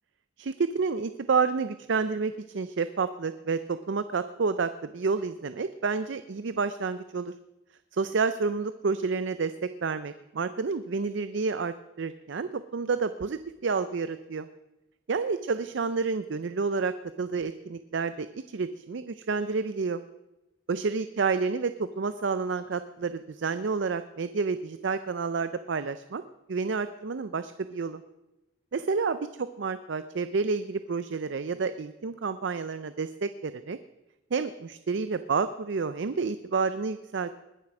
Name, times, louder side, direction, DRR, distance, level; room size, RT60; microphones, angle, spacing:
voice 1, 0.4-7.3 7.9-14.5 15.1-20.0 20.7-26.2 26.5-28.0 28.7-33.8 34.3-37.3, right 4 dB, 60° right, 12 dB, 0.5 m, -29 dB
20.5 x 7.6 x 6.0 m, 0.99 s
head